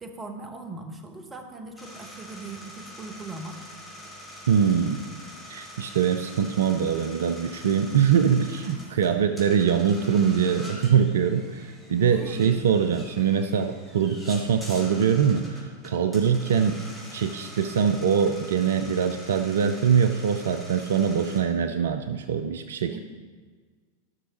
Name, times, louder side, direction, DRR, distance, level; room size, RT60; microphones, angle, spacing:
voice 1, 0.0-3.6 8.6-9.1 12.1-12.7 22.9-23.0, right 2 dB, 15° right, 3 dB, 1.1 m, -40 dB
sound 1, 1.8-21.4, equal, 5° left, 2.9 m, -44 dB
voice 2, 4.5-5.0 5.5-16.8 17.1-23.0, right 7 dB, 60° right, 8 dB, 0.4 m, -23 dB
13.5 x 6.3 x 2.9 m, 1.5 s
figure-of-eight pair, 90°, 0 cm